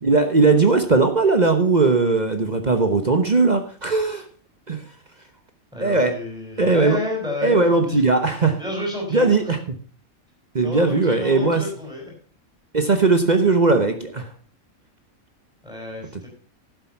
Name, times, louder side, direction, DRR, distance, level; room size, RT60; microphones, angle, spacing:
voice 1, 0.0-4.3 4.7-4.8 5.8-6.2 6.6-7.0 7.4-8.6 9.1-9.6 10.5-11.6 12.7-14.3 16.1-16.3, right 3 dB, 35° right, 7 dB, 1.0 m, -18 dB
voice 2, 5.7-8.0 8.6-9.5 10.6-12.1 15.6-16.3, left 2 dB, 5° right, -1 dB, 5.3 m, -31 dB
11.5 x 7.6 x 5.7 m, 0.42 s
omnidirectional pair, 1.4 m